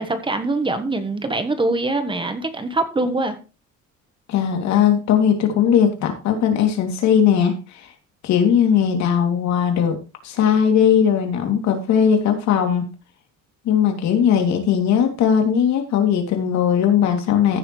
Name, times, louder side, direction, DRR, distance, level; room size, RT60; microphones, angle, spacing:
voice 1, 0.0-3.3, right 2 dB, 15° right, 1.3 m, -23 dB
voice 2, 4.3-7.9 8.2-10.0 10.2-12.8 13.6-17.6, left 8 dB, 65° left, 3.0 m, -18 dB
15.5 x 6.9 x 3.3 m
cardioid pair, 135°, 30 cm